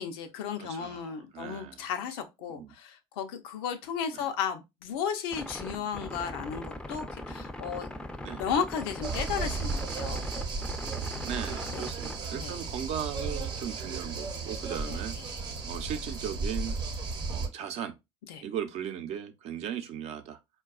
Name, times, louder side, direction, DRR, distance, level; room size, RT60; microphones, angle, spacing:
voice 1, 0.0-7.9 8.4-10.2 11.7-11.9 12.3-12.6 14.8-15.0 15.3-15.4 18.3-18.4, left 7 dB, 85° left, 0.6 m, -34 dB
voice 2, 0.6-1.9 2.5-2.7 4.1-4.2 5.5-5.9 8.2-8.4 11.2-15.2 15.7-16.8 17.3-17.9 18.4-20.4, right 9 dB, 60° right, 0.6 m, -37 dB
sound 1, 5.3-12.2, left 1 dB, 5° left, 0.4 m, -40 dB
sound 2, 9.0-17.5, right 4 dB, 35° right, 0.8 m, -34 dB
4.5 x 2.3 x 2.3 m
supercardioid pair, 80°, 13 cm